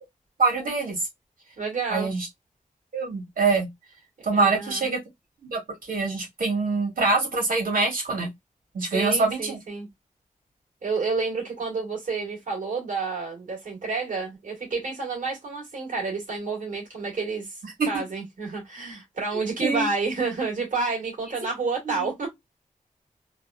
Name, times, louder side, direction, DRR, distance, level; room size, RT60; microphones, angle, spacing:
voice 1, 0.4-1.0 1.9-2.3 2.9-3.7 4.2-5.0 5.4-5.6 5.9-8.3 8.7-9.6 17.8-17.9 19.3-19.9 21.9-22.1, right 3 dB, 85° right, 1.8 m, -24 dB
voice 2, 1.6-2.1 4.3-4.9 8.9-9.9 10.8-17.6 17.9-22.3, right 4 dB, 70° right, 1.9 m, -29 dB
3.4 x 2.6 x 2.3 m
wide cardioid pair, 125°, 14 cm